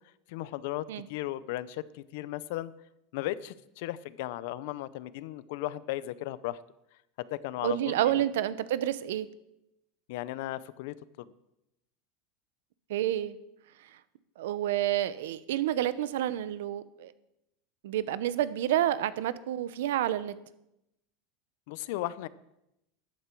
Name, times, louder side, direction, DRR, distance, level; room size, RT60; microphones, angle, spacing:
voice 1, 0.3-2.7 3.1-6.6 7.3-8.2 10.1-11.3 21.7-22.3, left 15 dB, 60° left, 17 dB, 0.6 m, -36 dB
voice 2, 7.6-9.3 12.9-13.4 14.4-17.1 17.8-20.4, right 12 dB, 85° right, 15 dB, 0.8 m, -29 dB
14.0 x 11.5 x 4.6 m, 0.86 s
supercardioid pair, 170°, 0 cm